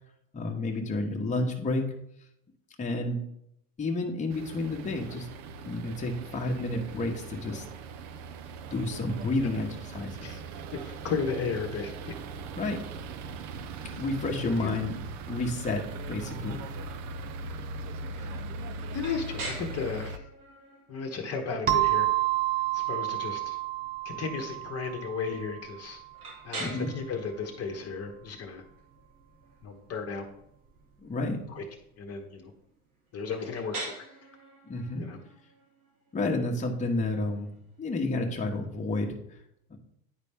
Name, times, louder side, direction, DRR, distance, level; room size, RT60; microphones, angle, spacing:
voice 1, 0.3-1.9 2.8-3.2 3.8-5.3 5.7-7.6 8.7-10.4 12.6-12.8 13.9-14.9 15.3-15.8 16.1-16.6 26.6-26.9 31.0-31.4 34.7-35.0 36.1-37.5 37.8-39.2 39.7-39.8, left 2 dB, 15° left, 0 dB, 1.1 m, -30 dB
sound 1, 4.3-20.2, right 3 dB, 55° right, 0.7 m, -40 dB
voice 2, 10.7-11.9 14.6-14.7 18.1-18.4 18.9-20.2 20.9-22.1 22.7-23.6 24.0-26.0 26.4-28.6 29.6-30.3 31.5-31.6 32.0-32.5 33.1-34.1 35.0-35.2, left 5 dB, 35° left, 3 dB, 1.1 m, -34 dB
sound 2, 19.0-38.8, right 2 dB, 85° right, 2.4 m, -46 dB
sound 3, 21.7-26.1, right 16 dB, 20° right, 0.6 m, -29 dB
9.9 x 4.1 x 3.5 m, 0.76 s
hypercardioid pair, 90°, 43 cm